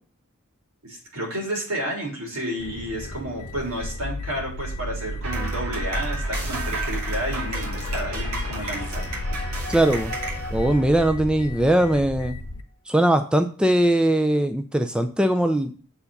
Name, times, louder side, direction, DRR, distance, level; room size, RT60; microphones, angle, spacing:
voice 1, 0.8-9.0, right 1 dB, 70° right, -1 dB, 3.7 m, -31 dB
sound 1, 2.6-12.6, left 1 dB, 90° left, 0.9 m, -33 dB
sound 2, 5.2-11.2, right 1 dB, 90° right, 2.7 m, -32 dB
voice 2, 9.7-10.1 10.5-12.3 12.9-15.7, right 1 dB, 5° right, 7 dB, 0.4 m, -20 dB
7.1 x 4.7 x 6.5 m, 0.41 s
head